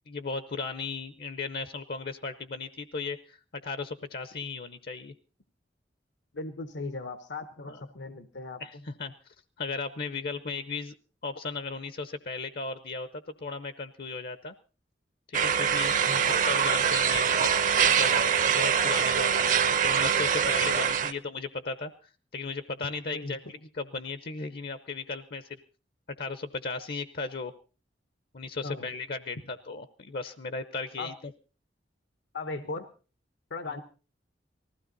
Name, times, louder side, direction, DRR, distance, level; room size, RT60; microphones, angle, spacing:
voice 1, 0.1-5.1 7.7-7.8 8.6-9.1 9.6-10.9 11.2-14.5 15.3-25.6 26.2-27.5 28.3-31.3, left 4 dB, 55° left, 13 dB, 0.8 m, -36 dB
voice 2, 6.3-8.8 16.0-16.4 20.6-20.9 23.1-23.4 28.6-28.9 31.0-31.1 32.3-32.9 33.5-33.8, left 3 dB, 80° left, 10 dB, 1.1 m, -38 dB
sound 1, 15.3-21.1, right 7 dB, 45° right, 0.7 m, -24 dB
19.5 x 15.5 x 4.0 m, 0.36 s
head